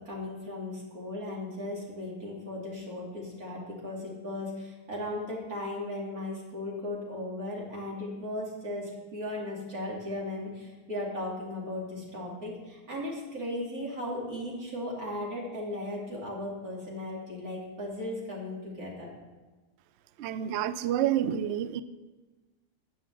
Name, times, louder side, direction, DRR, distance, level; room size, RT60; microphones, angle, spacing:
voice 1, 0.0-19.1, left 1 dB, 60° right, -3 dB, 3.1 m, -36 dB
voice 2, 20.2-21.8, right 10 dB, 90° right, 13 dB, 0.5 m, -28 dB
8.7 x 7.2 x 7.6 m, 1.2 s
omnidirectional pair, 1.7 m